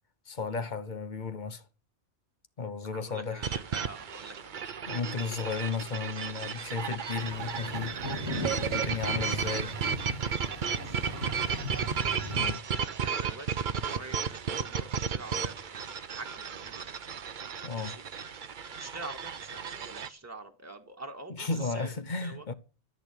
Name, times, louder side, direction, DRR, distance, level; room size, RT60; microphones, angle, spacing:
voice 1, 0.3-1.6 2.6-3.5 4.9-8.0 8.7-9.7 12.3-12.6 17.6-18.0 21.3-22.5, left 4 dB, 45° left, 1.1 m, -34 dB
voice 2, 2.9-4.6 9.2-9.4 10.8-11.7 12.2-12.4 13.0-15.8 16.1-16.9 17.8-18.0 18.8-21.9 22.2-22.5, right 3 dB, 15° right, 1.7 m, -46 dB
sound 1, 3.4-20.1, right 6 dB, 50° right, 0.8 m, -34 dB
sound 2, 7.1-12.4, left 1 dB, 80° left, 4.4 m, -39 dB
13.5 x 6.6 x 8.3 m
omnidirectional pair, 1.2 m